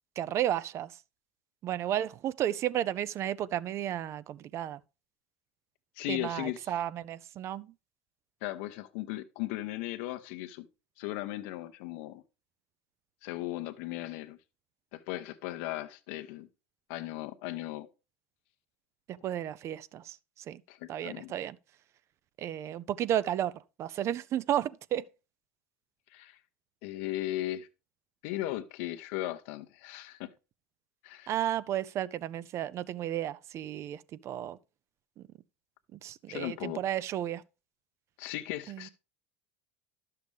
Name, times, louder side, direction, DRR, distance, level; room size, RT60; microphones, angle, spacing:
voice 1, 0.2-1.0 1.6-4.8 6.1-7.7 19.2-20.2 20.5-20.6 20.9-21.6 22.4-25.0 31.3-34.6 35.2-35.3 35.9-37.4 38.7-38.9, right 11 dB, 45° right, 0.4 m, -33 dB
voice 2, 6.0-6.6 8.4-10.7 11.0-12.2 13.2-14.4 14.9-16.5 16.9-17.9 20.7-21.3 26.1-26.4 26.8-27.7 28.2-30.3 31.0-31.3 36.3-36.8 38.2-38.9, left 16 dB, 65° left, 0.8 m, -37 dB
11.5 x 6.7 x 3.3 m
hypercardioid pair, 75°, 7 cm